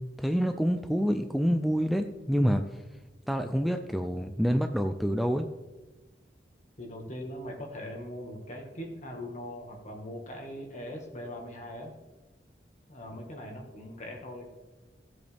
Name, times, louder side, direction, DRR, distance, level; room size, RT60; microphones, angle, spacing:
voice 1, 0.0-2.6 3.3-5.5, equal, ahead, 6 dB, 0.4 m, -27 dB
voice 2, 6.8-11.9 12.9-14.5, left 1 dB, 40° left, 2 dB, 1.8 m, -41 dB
17.0 x 7.9 x 3.5 m, 1.2 s
head